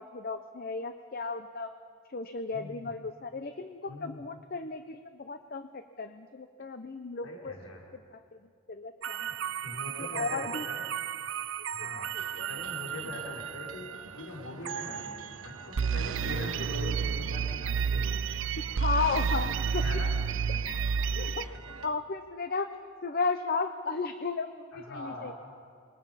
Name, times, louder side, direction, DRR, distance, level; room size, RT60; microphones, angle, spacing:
voice 1, 0.0-1.7 2.1-7.5 7.9-8.4 8.7-9.2 10.0-10.6 11.8-12.5 16.4-16.5 18.6-19.8 20.6-21.4 21.8-22.7 23.0-25.3, left 4 dB, 45° left, 9 dB, 0.7 m, -35 dB
voice 2, 2.5-2.9 3.9-4.2 7.2-7.8 9.6-10.8 11.7-13.9 14.1-18.5 19.8-20.4 21.1-21.3 24.7-25.3, left 1 dB, 75° left, -3 dB, 5.6 m, -42 dB
sound 1, 9.0-14.0 14.7-15.4 15.8-21.4, right 6 dB, 60° right, 0.5 m, -32 dB
sound 2, 12.2-21.9, right 4 dB, 85° right, 1.3 m, -48 dB
26.5 x 22.0 x 5.7 m, 2.2 s
head